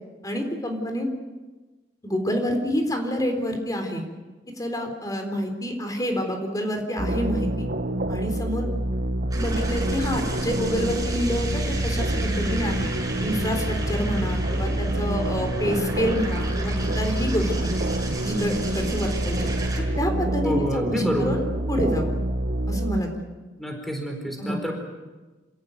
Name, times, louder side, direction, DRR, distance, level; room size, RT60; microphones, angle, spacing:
voice 1, 0.2-1.1 2.0-4.0 4.6-7.7 8.1-8.7 9.3-12.9 13.2-17.7 18.2-19.5 19.8-22.2 22.7-23.1 24.4-24.6, equal, 20° left, 4 dB, 3.8 m, -28 dB
sound 1, 7.0-23.0, right 1 dB, 55° right, 1.2 m, -27 dB
sound 2, 9.3-19.8, right 1 dB, 20° right, 6.5 m, -33 dB
voice 2, 20.4-21.4 23.6-24.7, equal, ahead, 2 dB, 4.8 m, -28 dB
28.0 x 17.5 x 9.2 m, 1.2 s
head